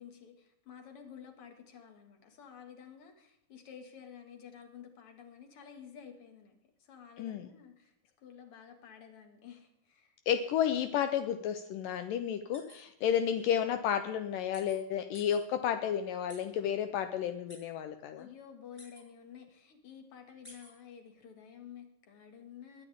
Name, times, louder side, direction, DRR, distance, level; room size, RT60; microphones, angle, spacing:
voice 1, 0.0-10.2 18.2-22.9, left 8 dB, 45° left, 5 dB, 2.6 m, -52 dB
voice 2, 10.3-18.2, left 9 dB, 80° left, 8 dB, 2.3 m, -32 dB
sound 1, 12.5-12.8 13.3-13.4 14.5-14.8 15.1-15.4 16.3-16.4 17.5-17.6 18.8-19.0 20.4-20.7, left 1 dB, 20° left, 6.8 m, -52 dB
22.0 x 11.0 x 3.6 m, 0.76 s
omnidirectional pair, 4.0 m